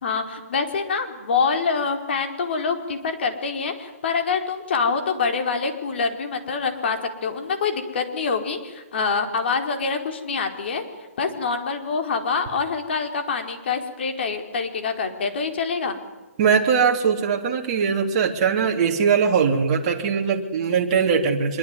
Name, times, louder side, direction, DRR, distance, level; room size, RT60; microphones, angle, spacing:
voice 1, 0.0-10.8 11.2-16.0, left 5 dB, 45° left, 6 dB, 4.5 m, -25 dB
voice 2, 16.4-21.6, right 6 dB, 30° right, 1 dB, 3.4 m, -21 dB
25.5 x 23.5 x 9.8 m, 1.1 s
hypercardioid pair, 170°, 8 cm